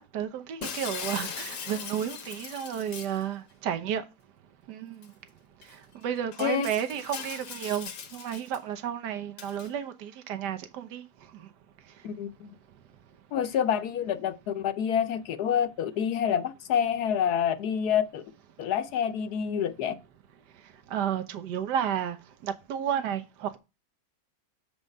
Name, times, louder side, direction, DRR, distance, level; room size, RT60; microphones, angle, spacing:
voice 1, 0.0-4.0 4.7-5.1 6.0-11.0 20.9-22.2 22.4-23.6, right 9 dB, 70° right, 1.5 m, -32 dB
Shatter, 0.6-3.2 5.0-5.1 5.6-5.7 6.3-8.6 9.4-9.7, left 7 dB, 90° left, 1.9 m, -39 dB
voice 2, 12.0-12.5 13.3-18.2 18.6-19.9, left 8 dB, 65° left, 1.1 m, -27 dB
7.2 x 4.8 x 5.3 m
omnidirectional pair, 1.9 m